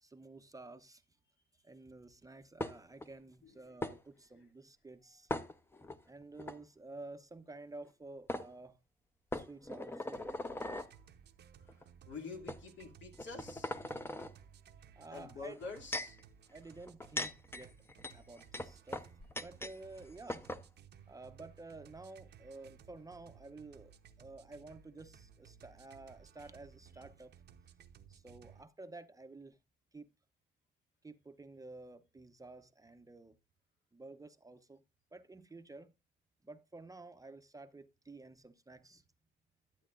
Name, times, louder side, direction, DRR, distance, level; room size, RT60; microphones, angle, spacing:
voice 1, 0.0-1.0 1.6-5.3 6.1-8.8 9.3-10.2 14.9-15.6 16.5-17.8 18.1-19.1 19.4-20.4 21.1-23.9 24.2-27.3 28.1-29.6 29.9-30.1 31.0-33.4 33.9-34.8 35.1-35.9 36.4-39.0, right 2 dB, 15° right, 0.8 m, -51 dB
sound 1, 2.6-3.1 3.8-4.0 5.3-6.0 6.4-6.6 7.9-8.0 8.3-8.5 9.3-10.9 11.7-11.8 12.5-12.6 13.1-14.3 15.4-16.2 16.8-19.8 20.0-20.1 20.3-20.6, left 1 dB, 10° left, 0.8 m, -40 dB
sound 2, 10.1-28.7, right 8 dB, 60° right, 0.9 m, -59 dB
voice 2, 12.1-13.8 15.1-16.2, left 4 dB, 65° left, 2.6 m, -47 dB
12.5 x 8.4 x 2.5 m
cardioid pair, 90°, 20 cm